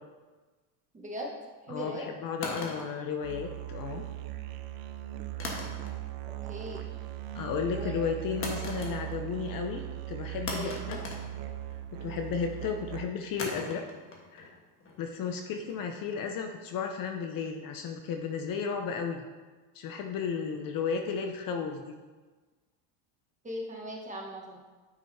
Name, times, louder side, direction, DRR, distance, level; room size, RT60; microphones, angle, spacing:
voice 1, 0.9-1.3 1.7-2.1 6.5-6.9 7.7-7.9 10.5-11.0 23.4-24.6, right 1 dB, 15° right, -2 dB, 1.2 m, -39 dB
voice 2, 1.7-4.0 7.3-9.8 10.1-11.0 12.0-13.8 14.3-14.5 15.0-19.2 19.7-21.9, left 6 dB, 45° left, 4 dB, 0.7 m, -33 dB
sound 1, 2.4-3.8 5.4-6.2 6.5-7.0 8.4-9.4 9.6-9.7 10.5-12.0 13.4-16.4, left 2 dB, 25° left, 1.4 m, -41 dB
Musical instrument, 3.2-13.4, right 14 dB, 50° right, 0.6 m, -39 dB
9.4 x 5.0 x 2.7 m, 1.3 s
supercardioid pair, 110°, 48 cm